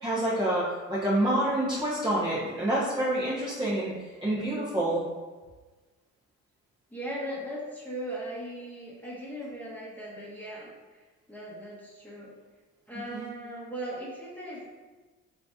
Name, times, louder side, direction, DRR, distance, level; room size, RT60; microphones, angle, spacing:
voice 1, 0.0-3.9 4.2-5.0 13.1-13.3, right 1 dB, 15° right, -9 dB, 0.8 m, -27 dB
voice 2, 6.9-12.4 12.9-14.6, right 1 dB, 5° left, -7 dB, 1.1 m, -38 dB
3.9 x 2.8 x 2.3 m, 1.3 s
cardioid pair, 90°, 30 cm